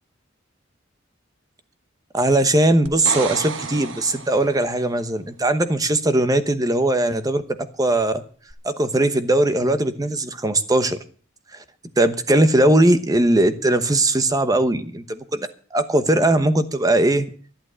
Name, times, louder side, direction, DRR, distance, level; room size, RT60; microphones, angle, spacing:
voice 1, 2.1-8.2 8.6-11.0 11.5-11.6 12.0-17.3, right 1 dB, 20° right, 11 dB, 1.0 m, -19 dB
sound 1, 2.9-4.8 8.5-8.6, right 4 dB, 70° right, 1.4 m, -31 dB
12.0 x 11.0 x 6.3 m, 0.44 s
head